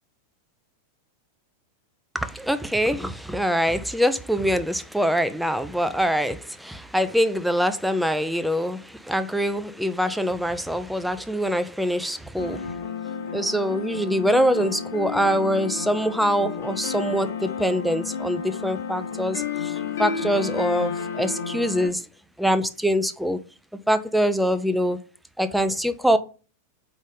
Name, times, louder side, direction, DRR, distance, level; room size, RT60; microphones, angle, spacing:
voice 1, 2.1-12.7 13.3-22.0 22.4-23.4 23.9-25.0 25.4-26.2, equal, ahead, 0.6 m, -24 dB
sound 1, 12.4-21.9, left 6 dB, 55° left, 1.3 m, -31 dB
5.0 x 4.0 x 5.4 m
figure-of-eight pair, 90°, 0 cm